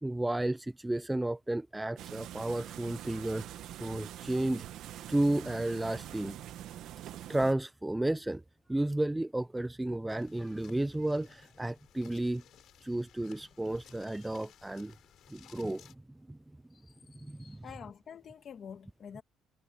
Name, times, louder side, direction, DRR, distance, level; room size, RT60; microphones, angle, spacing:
voice 1, 0.0-3.5 3.8-4.7 5.1-6.4 7.3-8.4 8.7-12.4 12.8-14.9 15.3-15.8 16.3-16.4 17.2-17.6, right 1 dB, 5° right, 0.3 m, -32 dB
sound 1, 2.0-7.5, right 12 dB, 55° right, 1.0 m, -44 dB
sound 2, 10.1-15.9, left 11 dB, 50° left, 3.9 m, -59 dB
voice 2, 17.4-19.2, left 7 dB, 35° left, 1.7 m, -47 dB
cardioid pair, 170°, 0 cm